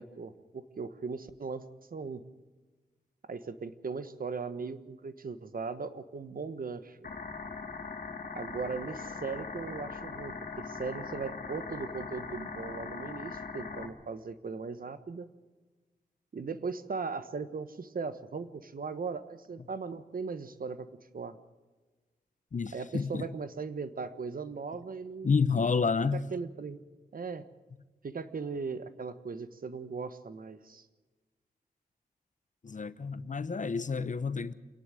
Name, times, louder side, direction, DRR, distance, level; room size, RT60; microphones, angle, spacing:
voice 1, 0.0-1.6 1.9-2.2 3.2-7.0 8.3-15.3 16.3-20.9 21.1-21.4 22.7-25.4 26.1-26.8 27.1-27.5 28.0-30.9, right 4 dB, 65° right, 1.3 m, -38 dB
sound 1, 7.0-13.9, left 4 dB, 70° left, 2.5 m, -40 dB
voice 2, 22.5-23.3 25.2-26.3 32.6-34.5, left 5 dB, 50° left, 0.9 m, -29 dB
26.5 x 11.0 x 9.2 m
cardioid pair, 55°, 16 cm